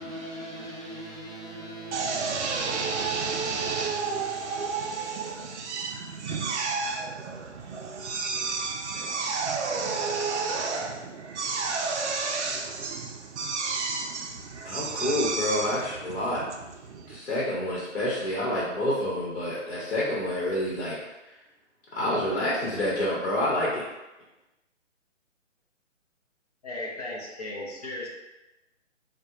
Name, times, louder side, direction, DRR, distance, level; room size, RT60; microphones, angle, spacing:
voice 1, 0.0-5.7, right 1 dB, 15° right, 0.8 m, -42 dB
Drill, 1.9-17.2, right 4 dB, 60° right, 0.5 m, -31 dB
voice 2, 14.6-16.4 17.1-21.0 21.9-23.8, left 1 dB, 50° left, 1.0 m, -28 dB
voice 3, 26.6-28.1, left 2 dB, 30° left, 0.6 m, -36 dB
4.1 x 2.2 x 2.4 m
hypercardioid pair, 155°, 39 cm